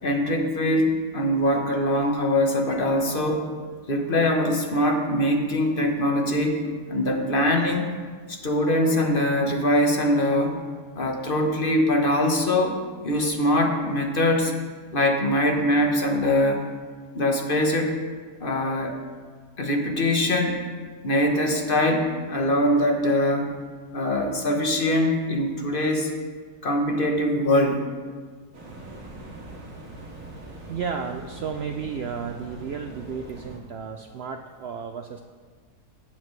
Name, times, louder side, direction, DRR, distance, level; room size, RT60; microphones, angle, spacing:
voice 1, 0.0-3.4 3.9-6.6 6.9-7.9 8.3-10.6 10.9-12.8 13.0-14.5 14.9-16.6 17.1-18.0 18.4-19.0 19.6-20.6 21.0-23.5 23.9-26.1 26.6-27.8, left 1 dB, 40° left, 3 dB, 1.1 m, -22 dB
sound 1, 28.5-33.6, right 1 dB, 60° right, 2.2 m, -42 dB
voice 2, 30.7-35.2, right 6 dB, 90° right, 5 dB, 0.5 m, -33 dB
17.5 x 7.4 x 3.2 m, 1.5 s
omnidirectional pair, 1.7 m